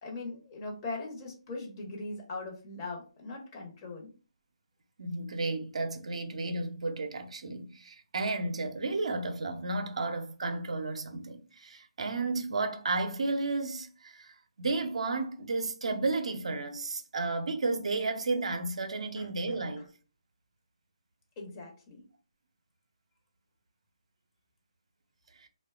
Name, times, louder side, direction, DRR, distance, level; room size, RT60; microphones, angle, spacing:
voice 1, 0.0-4.1 19.2-19.6 21.4-22.0, left 2 dB, 30° left, 0.8 m, -40 dB
voice 2, 5.0-19.9 25.4-25.5, right 3 dB, 70° right, 0.4 m, -33 dB
2.7 x 2.2 x 2.3 m
figure-of-eight pair, 150°, 3 cm